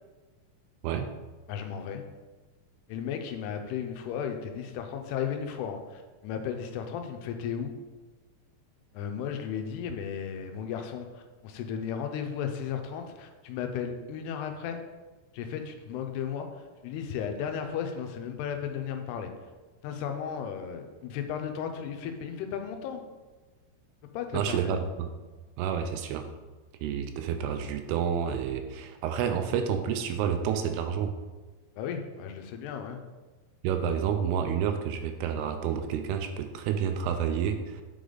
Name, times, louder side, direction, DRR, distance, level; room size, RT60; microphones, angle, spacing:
voice 1, 1.5-2.0 2.9-7.7 8.9-14.8 15.3-16.5 16.8-19.3 19.8-23.0 24.0-24.7 31.8-33.1, left 7 dB, 85° left, 5 dB, 2.7 m, -35 dB
voice 2, 24.3-25.1 25.6-26.2 26.8-31.1 33.6-37.8, right 8 dB, 85° right, 7 dB, 2.5 m, -29 dB
8.1 x 5.0 x 3.9 m, 1.3 s
omnidirectional pair, 4.7 m